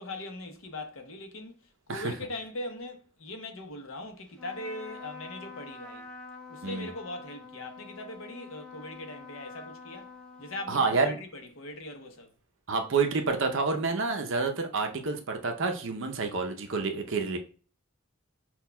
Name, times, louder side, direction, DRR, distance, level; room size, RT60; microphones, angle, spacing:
voice 1, 0.0-6.1 6.5-10.1 10.4-12.3, left 2 dB, 70° left, 0.7 m, -40 dB
Trumpet, 4.3-11.2, left 4 dB, 5° left, 0.5 m, -47 dB
voice 2, 10.7-11.2 12.7-17.4, right 4 dB, 65° right, 0.6 m, -28 dB
5.8 x 2.3 x 2.2 m
head